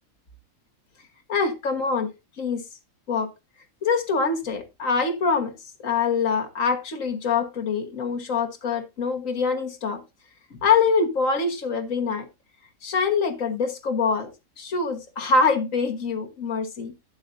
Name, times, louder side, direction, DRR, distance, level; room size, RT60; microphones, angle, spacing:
voice 1, 1.3-2.6 3.1-3.3 3.8-5.5 5.8-10.0 10.5-12.3 12.8-14.3 14.6-16.9, left 5 dB, 75° left, 1.8 m, -24 dB
11.5 x 8.8 x 2.6 m
omnidirectional pair, 1.4 m